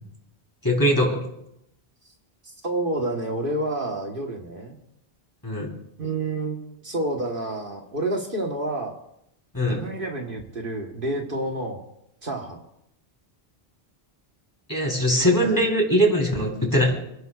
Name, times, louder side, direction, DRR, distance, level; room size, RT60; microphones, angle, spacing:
voice 1, 0.6-1.2 5.4-5.7 9.5-9.8 14.7-17.0, equal, 20° left, 0 dB, 3.5 m, -21 dB
voice 2, 2.6-4.8 6.0-8.9 9.7-11.8 12.2-12.6 15.2-15.6, right 2 dB, 60° right, 1 dB, 1.6 m, -29 dB
29.5 x 11.0 x 2.4 m, 0.79 s
omnidirectional pair, 1.0 m